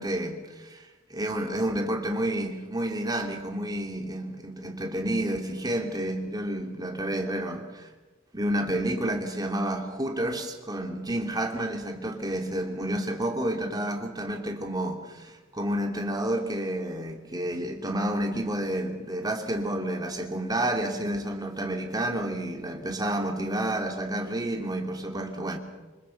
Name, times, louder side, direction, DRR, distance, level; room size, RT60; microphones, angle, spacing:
voice 1, 0.0-7.9 8.3-25.6, right 1 dB, 20° right, 2.9 m, -30 dB
27.5 x 26.0 x 5.8 m
head